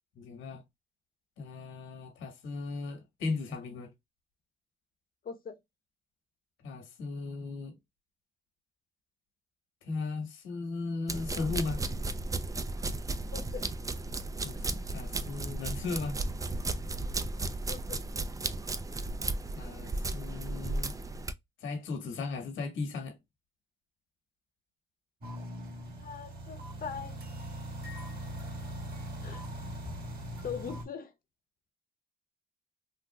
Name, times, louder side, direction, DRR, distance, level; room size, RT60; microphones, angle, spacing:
voice 1, 0.2-0.6 1.4-3.9 6.6-7.7 9.8-11.8 14.4-16.2 19.5-20.9 21.6-23.2, left 4 dB, 75° left, 1.4 m, -37 dB
voice 2, 5.2-5.6 13.3-13.6 17.7-18.0 26.0-27.2 29.2-29.4 30.4-31.1, left 6 dB, 45° left, 0.8 m, -41 dB
sound 1, 11.1-21.3, right 2 dB, 15° right, 0.3 m, -34 dB
sound 2, 25.2-30.8, equal, 50° right, 1.7 m, -40 dB
3.7 x 2.5 x 2.2 m
cardioid pair, 90°, 20 cm